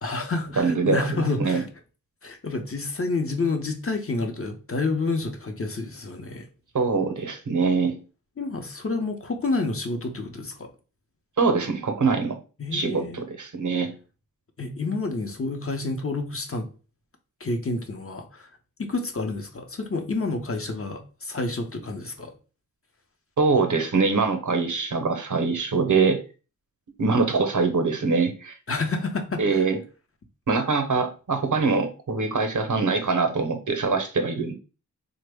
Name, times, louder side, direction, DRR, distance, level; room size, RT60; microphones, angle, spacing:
voice 1, 0.0-1.7 2.2-6.5 8.4-10.7 12.6-13.2 14.6-16.7 17.4-18.5 18.8-22.3 28.7-29.6, left 3 dB, 40° left, 0.7 m, -29 dB
voice 2, 0.6-1.6 6.7-8.0 11.4-12.4 12.7-13.9 23.4-26.2 27.0-28.5 29.4-29.8 30.5-34.6, right 4 dB, 60° right, 0.7 m, -23 dB
3.4 x 2.1 x 3.4 m
cardioid pair, 45°, 34 cm